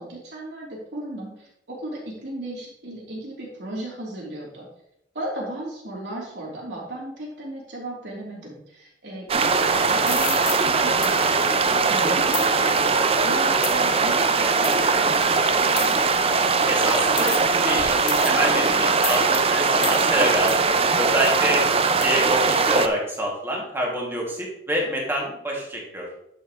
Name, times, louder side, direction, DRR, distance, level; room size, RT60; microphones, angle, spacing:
voice 1, 0.0-4.7 5.1-16.0, right 1 dB, 85° right, -4 dB, 3.2 m, -36 dB
sound 1, 9.3-22.9, right 4 dB, 35° right, 0.5 m, -21 dB
sound 2, 10.1-10.6 11.0-11.3 12.3-12.5 13.6-13.9 14.6-14.8 15.8-16.1 17.2-17.6 18.1-18.5 19.0-19.4 19.8-20.0 20.5-20.6 21.2-21.4 22.0-22.1, left 9 dB, 45° left, 0.9 m, -31 dB
voice 2, 16.7-21.6 22.0-26.1, right 1 dB, 15° right, -3 dB, 2.2 m, -26 dB
11.0 x 6.1 x 3.1 m, 0.77 s
head